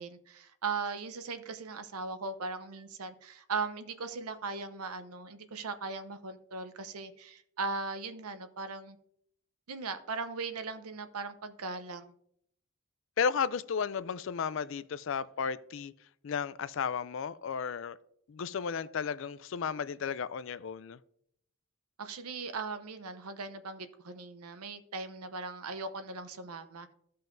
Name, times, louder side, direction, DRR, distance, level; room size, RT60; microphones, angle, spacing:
voice 1, 0.0-9.0 9.7-12.1 22.0-26.9, right 4 dB, 85° right, 0.8 m, -38 dB
voice 2, 13.2-15.9 16.2-18.0 18.3-21.0, left 6 dB, 60° left, 0.3 m, -33 dB
15.0 x 5.6 x 2.6 m
head